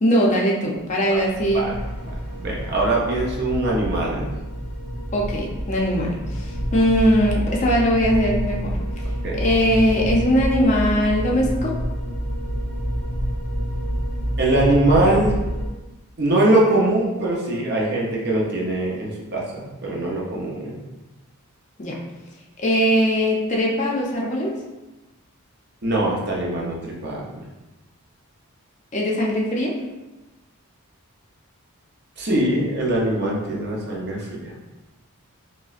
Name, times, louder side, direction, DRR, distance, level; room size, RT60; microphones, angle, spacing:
voice 1, 0.0-1.7 5.1-8.7 9.4-11.7 21.8-21.9 22.6-24.5 28.9-29.7, equal, 30° left, -3 dB, 0.5 m, -20 dB
sound 1, 1.1-15.7, equal, 85° right, 0.8 m, -28 dB
voice 2, 2.4-4.3 9.2-9.4 14.4-15.3 16.2-20.8 25.8-27.4 32.2-34.5, right 1 dB, 50° right, -3 dB, 0.7 m, -22 dB
4.9 x 2.1 x 2.4 m, 1.1 s
head